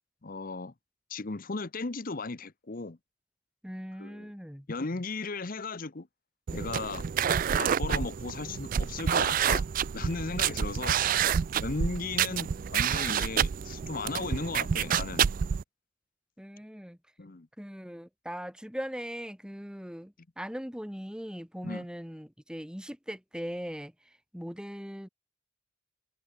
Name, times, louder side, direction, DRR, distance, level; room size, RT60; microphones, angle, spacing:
voice 1, 0.2-0.7 1.1-3.0 4.0-4.3 4.7-6.1 6.5-7.1 7.5-9.6 9.9-11.0 11.6-15.3 17.2-17.5 21.6-21.8, left 3 dB, 40° left, 0.8 m, -36 dB
voice 2, 3.6-4.7 16.4-17.0 17.6-25.1, equal, 5° right, 2.4 m, -40 dB
sound 1, 6.5-15.6, right 8 dB, 40° right, 0.3 m, -28 dB
head